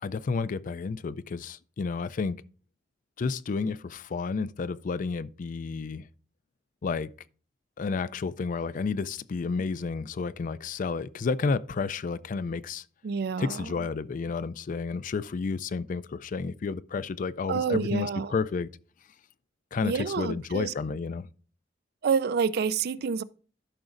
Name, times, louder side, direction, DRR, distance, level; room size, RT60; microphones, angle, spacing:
voice 1, 0.0-2.4 3.2-6.1 6.8-7.1 7.8-12.8 13.4-18.7 19.7-21.3, left 4 dB, 45° left, 0.4 m, -31 dB
voice 2, 13.0-13.7 17.5-18.3 19.8-20.7 22.0-23.2, right 6 dB, 60° right, 0.4 m, -28 dB
13.0 x 5.9 x 2.5 m
head